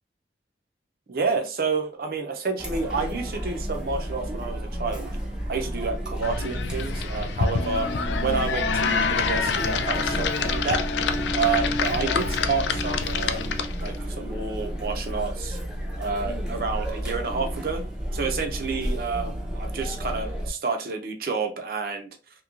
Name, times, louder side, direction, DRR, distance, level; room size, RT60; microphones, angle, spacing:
voice 1, 1.1-5.2 5.5-7.9 8.2-10.8 11.3-15.6 16.0-17.8 18.1-22.1, right 4 dB, 55° right, 5 dB, 0.5 m, -29 dB
Chatter, 2.6-20.5, equal, 5° right, 0.5 m, -32 dB
sound 1, 6.2-13.9, left 6 dB, 80° left, 0.3 m, -27 dB
sound 2, 7.5-14.9, equal, 40° left, 0.6 m, -34 dB
3.0 x 2.7 x 2.4 m, 0.33 s
head